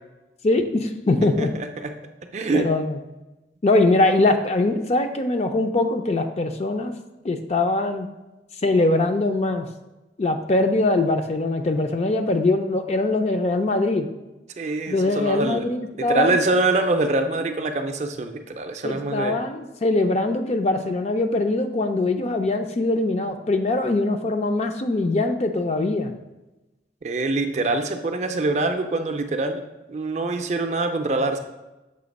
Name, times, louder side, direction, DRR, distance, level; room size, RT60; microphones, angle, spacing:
voice 1, 0.4-1.5 2.5-3.0 3.6-6.9 7.2-8.1 8.6-9.7 10.2-14.1 14.9-16.4 18.8-26.1, left 2 dB, 35° left, 6 dB, 0.4 m, -22 dB
voice 2, 2.3-2.7 14.6-15.6 16.0-19.4 27.0-29.6 29.9-31.4, right 2 dB, 40° right, 6 dB, 0.4 m, -24 dB
6.8 x 2.8 x 5.2 m, 1.0 s
head